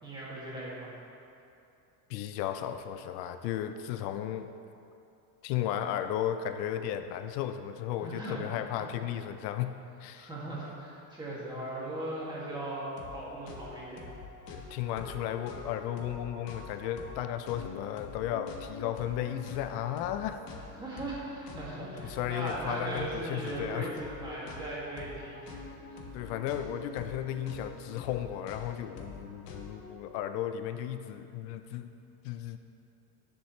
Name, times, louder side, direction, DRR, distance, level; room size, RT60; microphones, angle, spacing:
voice 1, 0.0-0.9 8.0-8.5 8.7-8.9 10.2-14.0 20.6-25.6 25.9-26.1, right 1 dB, 10° right, -7 dB, 2.1 m, -38 dB
voice 2, 2.1-4.5 5.4-9.7 10.0-10.3 14.5-20.4 22.0-23.9 26.1-31.9 32.2-32.6, left 11 dB, 75° left, 9 dB, 0.7 m, -34 dB
sound 1, 13.0-13.2 13.5-29.9, left 3 dB, 50° left, 1.5 m, -46 dB
18.5 x 7.4 x 3.2 m, 2.7 s
cardioid pair, 170°, 50 cm